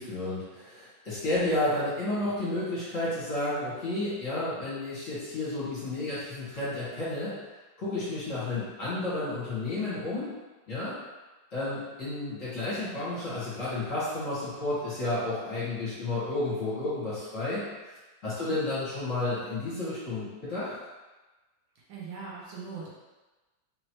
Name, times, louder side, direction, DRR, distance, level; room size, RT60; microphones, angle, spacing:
voice 1, 0.0-7.3 7.8-10.3 10.7-11.0 11.5-17.9 18.2-20.7, left 2 dB, 45° left, -11 dB, 1.8 m, -31 dB
voice 2, 18.2-18.6 21.9-22.9, right 5 dB, 75° right, -5 dB, 1.7 m, -41 dB
4.2 x 3.0 x 3.0 m, 1.2 s
omnidirectional pair, 2.2 m